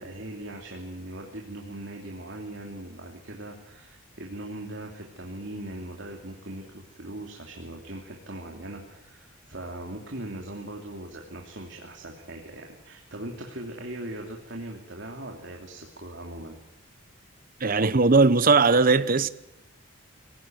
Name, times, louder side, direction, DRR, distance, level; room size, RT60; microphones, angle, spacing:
voice 1, 0.0-16.6, right 1 dB, 55° right, 3.0 m, -40 dB
voice 2, 17.6-19.3, right 4 dB, 40° right, 0.9 m, -19 dB
25.5 x 18.0 x 9.3 m
head